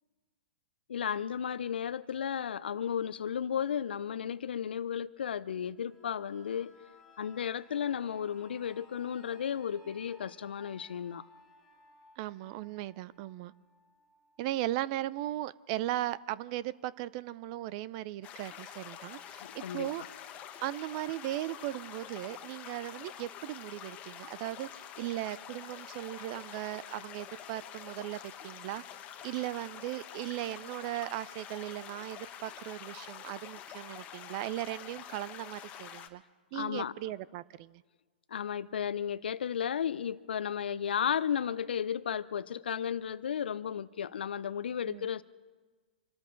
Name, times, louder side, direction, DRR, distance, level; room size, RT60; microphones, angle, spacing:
voice 1, 0.9-6.7 7.2-11.2 19.4-19.9 36.5-36.9 38.3-45.2, left 8 dB, 70° left, 0.6 m, -34 dB
sound 1, 5.7-15.3 15.7-15.8, left 2 dB, 5° left, 2.5 m, -61 dB
voice 2, 12.2-13.5 14.4-20.0 20.6-28.8 29.2-36.2 36.5-37.8 44.8-45.1, right 15 dB, 40° right, 0.5 m, -37 dB
sound 2, 18.2-36.1, left 9 dB, 25° left, 1.2 m, -47 dB
27.0 x 13.5 x 3.9 m
hypercardioid pair, 120°, 6 cm